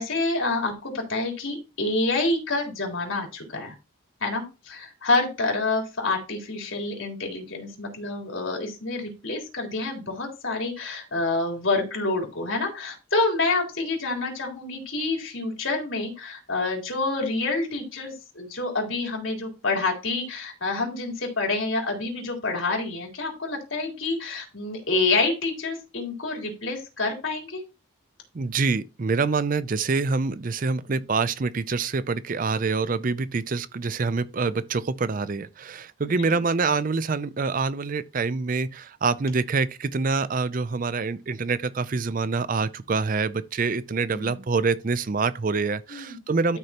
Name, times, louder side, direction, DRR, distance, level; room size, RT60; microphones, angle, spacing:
voice 1, 0.0-3.7 4.2-27.6 36.2-36.4 44.1-44.4 45.9-46.2, left 3 dB, 70° left, 3.8 m, -27 dB
voice 2, 28.3-46.6, right 4 dB, 40° right, 0.5 m, -26 dB
12.5 x 6.5 x 2.9 m
head